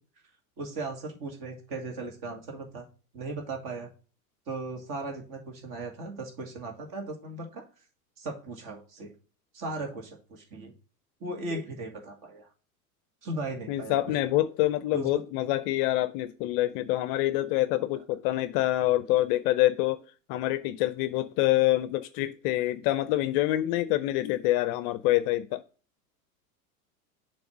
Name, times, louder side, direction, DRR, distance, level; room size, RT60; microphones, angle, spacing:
voice 1, 0.6-2.9 3.1-3.9 4.5-7.7 8.2-9.1 9.5-10.7 11.2-12.5 13.2-14.0 14.9-15.2, right 2 dB, 45° right, 2.3 m, -37 dB
voice 2, 13.7-20.0 20.3-25.6, left 15 dB, 40° left, 0.5 m, -26 dB
7.0 x 3.3 x 6.0 m
hypercardioid pair, 95°, 45 cm